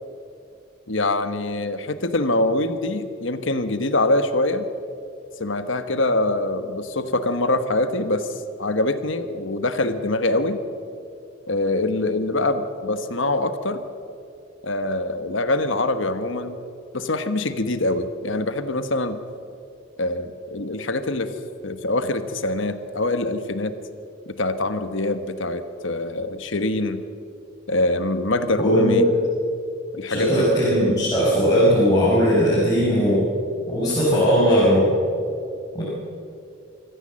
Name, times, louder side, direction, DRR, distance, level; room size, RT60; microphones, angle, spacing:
voice 1, 0.9-4.7 5.4-10.6 11.5-13.8 14.6-16.6 16.9-19.2 20.0-21.3 21.6-23.7 24.4-27.0 27.7-29.1 29.9-30.4, left 2 dB, 70° left, 10 dB, 1.3 m, -24 dB
voice 2, 28.6-29.0 30.1-33.3 33.7-34.9 35.7-35.8, equal, 20° left, -8 dB, 5.7 m, -18 dB
26.0 x 14.0 x 7.7 m, 2.5 s
head